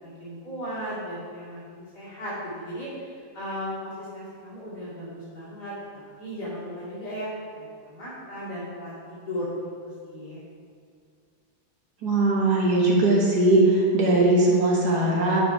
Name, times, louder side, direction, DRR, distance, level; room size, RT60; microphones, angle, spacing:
voice 1, 0.0-9.6 9.8-10.4, equal, 60° left, -10 dB, 3.1 m, -36 dB
voice 2, 12.0-15.4, right 2 dB, 60° right, -3 dB, 1.8 m, -20 dB
9.4 x 4.9 x 4.6 m, 2.1 s
omnidirectional pair, 2.0 m